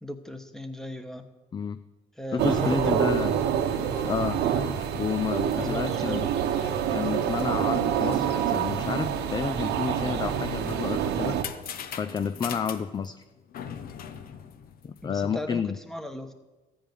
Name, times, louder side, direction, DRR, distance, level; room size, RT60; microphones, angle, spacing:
voice 1, 0.0-1.3 2.2-3.4 5.5-6.3 15.0-16.3, left 1 dB, 5° left, 7 dB, 1.1 m, -36 dB
voice 2, 2.3-3.3 4.0-4.4 4.9-6.3 6.9-11.4 12.0-13.2 14.8-15.8, left 6 dB, 25° left, 11 dB, 0.4 m, -30 dB
sound 1, 2.4-11.4, right 9 dB, 80° right, 1.1 m, -27 dB
sound 2, 2.5-3.2 3.5-10.3, left 2 dB, 80° left, 2.9 m, -49 dB
sound 3, 10.6-15.4, left 8 dB, 60° left, 0.9 m, -40 dB
14.0 x 5.1 x 9.2 m, 1.1 s
cardioid pair, 110°, 17 cm